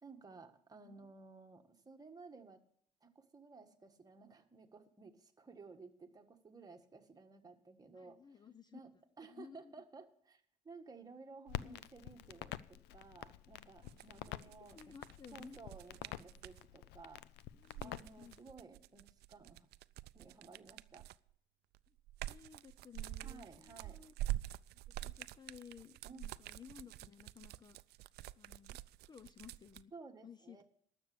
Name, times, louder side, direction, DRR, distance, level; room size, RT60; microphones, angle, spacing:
voice 1, 0.0-2.6 3.0-8.4 8.7-8.9 9.2-14.9 15.3-17.3 17.8-19.7 20.1-21.1 23.2-24.0 26.0-26.2 29.9-30.6, right 4 dB, 20° right, 4 dB, 1.5 m, -56 dB
voice 2, 8.0-8.8 9.3-9.7 11.6-11.8 13.8-13.9 14.3-15.6 17.5-18.4 21.9-22.0 22.3-24.1 24.7-27.8 28.4-29.9 30.2-30.6, left 7 dB, 25° left, 13 dB, 0.5 m, -56 dB
Crackle, 11.5-18.4, left 13 dB, 85° left, 0.5 m, -48 dB
sound 1, 13.8-16.6 17.5-21.3 21.7-29.8, right 16 dB, 75° right, 0.4 m, -46 dB
12.5 x 6.8 x 8.5 m, 0.64 s
cardioid pair, 110°, 17 cm